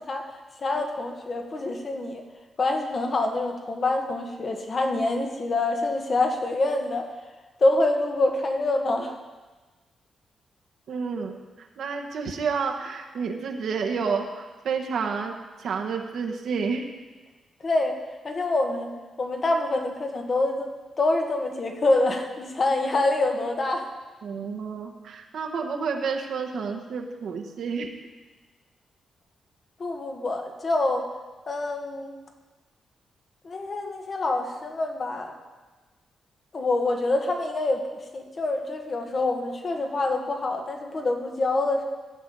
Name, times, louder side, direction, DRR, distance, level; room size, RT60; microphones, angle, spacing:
voice 1, 0.1-2.2 2.6-7.1 7.6-9.1 17.6-18.9 19.2-20.7 21.0-23.9 29.8-31.1 31.5-32.1 33.4-35.4 36.5-41.8, left 2 dB, 45° left, 3 dB, 1.5 m, -26 dB
voice 2, 10.9-15.3 15.6-16.9 24.2-27.9, right 5 dB, 75° right, 3 dB, 1.2 m, -30 dB
14.5 x 6.9 x 5.4 m, 1.3 s
cardioid pair, 95°, 0 cm